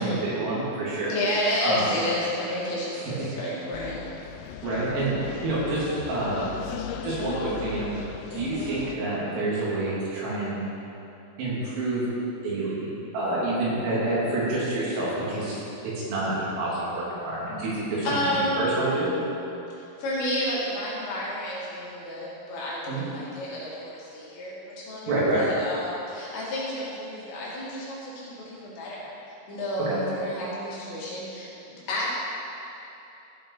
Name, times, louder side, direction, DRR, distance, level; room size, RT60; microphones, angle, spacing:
voice 1, 0.0-1.2 1.6-1.9 2.9-3.0 4.6-6.5 7.0-7.9 8.3-10.7 11.4-12.0 12.4-15.6 16.1-19.1 22.9-23.1 25.1-25.4 29.9-30.0, right 2 dB, 85° right, -8 dB, 5.6 m, -28 dB
voice 2, 1.1-4.1 18.0-18.6 19.7-29.1 29.5-32.1, left 1 dB, 65° left, -7 dB, 4.4 m, -31 dB
sound 1, 3.7-9.0, left 8 dB, 85° left, 3.2 m, -37 dB
15.5 x 7.1 x 4.8 m, 2.9 s
omnidirectional pair, 5.7 m